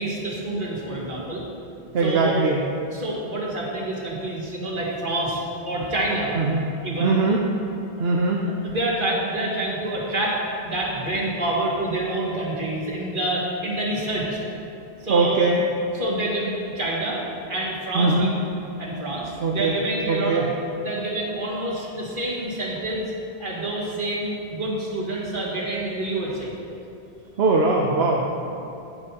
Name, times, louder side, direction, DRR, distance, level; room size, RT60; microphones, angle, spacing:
voice 1, 0.0-1.4 2.0-2.4 2.9-6.4 6.8-7.2 8.0-8.1 8.6-10.4 10.6-14.4 15.0-15.5 15.9-17.2 17.5-18.3 18.8-20.5 20.8-23.1 23.4-26.5, right 1 dB, 55° right, -6 dB, 2.0 m, -27 dB
voice 2, 1.9-2.6 6.3-6.6 7.0-7.4 8.0-8.5 15.1-15.6 17.9-18.3 19.4-19.8 20.1-20.5 27.4-28.2, right 3 dB, 75° right, -1 dB, 1.0 m, -21 dB
9.9 x 9.7 x 2.9 m, 2.8 s
omnidirectional pair, 1.0 m